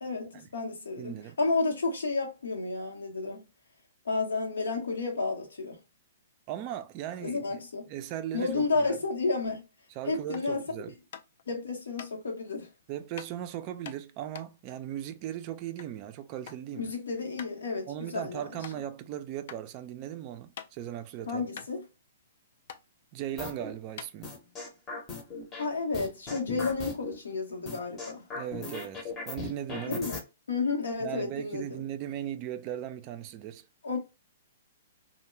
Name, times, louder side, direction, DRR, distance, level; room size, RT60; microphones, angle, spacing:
voice 1, 0.0-3.4 4.0-5.8 7.2-7.9 8.3-9.6 10.1-10.6 11.5-12.7 16.8-18.6 21.3-21.8 25.6-28.3 29.9-30.2 30.5-31.8 33.8-34.0, left 3 dB, 90° left, 0.8 m, -31 dB
voice 2, 1.0-1.4 6.5-7.6 7.9-9.0 10.0-10.9 12.9-16.9 17.9-21.4 23.1-24.3 28.3-30.0 31.0-33.7, right 11 dB, 35° right, 0.3 m, -38 dB
sound 1, 10.3-10.6 11.1-11.4 12.0-12.1 13.2-13.3 13.9-16.0 16.2-16.7 16.9-17.0 17.4-17.6 18.0-18.1 18.6-18.8 19.5-19.6 20.0-21.0 21.3-21.4 21.5-22.4 22.7-22.8 23.5-23.6 23.9-24.7, left 8 dB, 60° left, 0.3 m, -45 dB
sound 2, 23.4-23.7 24.2-25.6 25.9-27.1 27.7-30.2, left 3 dB, 20° left, 0.7 m, -38 dB
2.2 x 2.1 x 3.0 m
hypercardioid pair, 140°, 0 cm